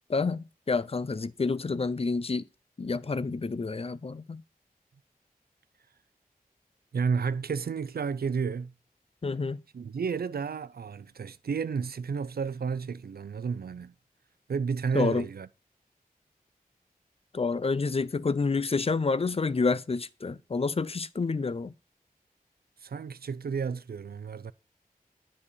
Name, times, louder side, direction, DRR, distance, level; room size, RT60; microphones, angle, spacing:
voice 1, 0.1-2.4 2.8-4.4 9.2-9.6 14.9-15.3 17.3-21.7, left 4 dB, 40° left, 0.6 m, -28 dB
voice 2, 6.9-8.7 9.7-13.9 14.5-15.5 21.4-21.5 22.8-24.5, right 5 dB, 80° right, 0.5 m, -32 dB
10.0 x 4.3 x 6.7 m
wide cardioid pair, 70°, 16 cm